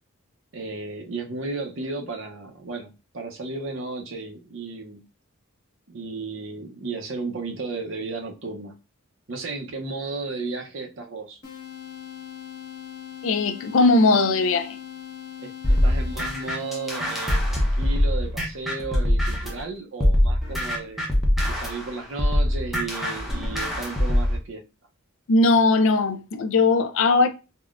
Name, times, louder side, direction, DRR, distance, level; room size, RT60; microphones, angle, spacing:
voice 1, 0.5-5.0 5.9-8.7 9.3-11.4 15.4-21.1 21.5-24.6, right 3 dB, 60° right, 0.6 m, -34 dB
sound 1, 11.4-17.5, left 10 dB, 45° left, 1.3 m, -40 dB
voice 2, 13.2-14.8 25.3-27.3, left 3 dB, 60° left, 0.4 m, -19 dB
sound 2, 15.6-19.6 20.0-24.4, left 1 dB, ahead, 0.6 m, -23 dB
3.6 x 2.1 x 2.4 m
head